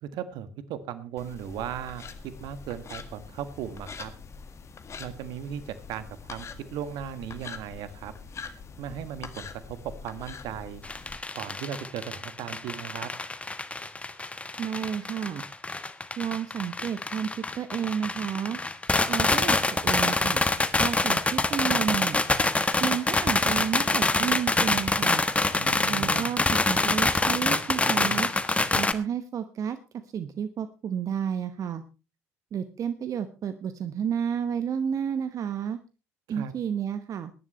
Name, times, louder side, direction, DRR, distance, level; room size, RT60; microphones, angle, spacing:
voice 1, 0.0-4.1 5.0-8.1 8.8-10.8 11.3-13.1 25.6-26.3 36.3-36.5, right 9 dB, 60° right, 12 dB, 1.5 m, -37 dB
sound 1, 1.2-11.2, left 5 dB, 35° left, 1.8 m, -44 dB
sound 2, 10.8-28.9, left 2 dB, 15° left, 1.3 m, -26 dB
voice 2, 14.6-15.4 16.2-18.6 19.1-19.6 19.8-20.5 20.8-22.2 22.8-25.2 25.9-28.3 28.7-29.8 30.1-31.8 32.5-35.8 36.3-37.3, right 8 dB, 45° right, 10 dB, 1.1 m, -31 dB
21.0 x 11.0 x 3.2 m, 0.32 s
hypercardioid pair, 60°, 8 cm